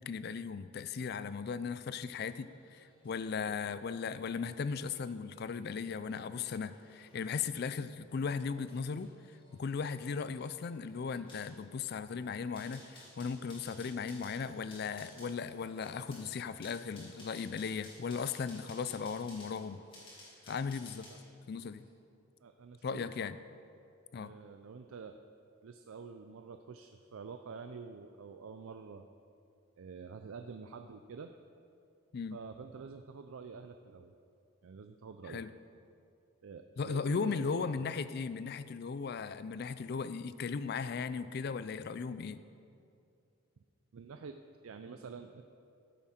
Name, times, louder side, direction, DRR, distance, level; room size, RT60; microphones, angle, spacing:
voice 1, 0.0-9.1 9.5-19.8 20.5-21.1 21.5-21.8 22.8-23.4 24.1-24.3 32.1-32.4 35.3-35.5 36.8-42.4, left 5 dB, 45° left, 14 dB, 0.3 m, -37 dB
sound 1, 2.1-21.3 21.7-21.9, left 1 dB, 25° left, 2.6 m, -58 dB
voice 2, 22.4-23.1 24.1-25.2 25.6-29.0 29.8-31.3 32.3-34.1 34.6-35.4 36.4-37.9 43.9-44.4 44.6-45.4, right 5 dB, 75° right, 7 dB, 0.4 m, -47 dB
13.5 x 7.2 x 4.3 m, 2.5 s
head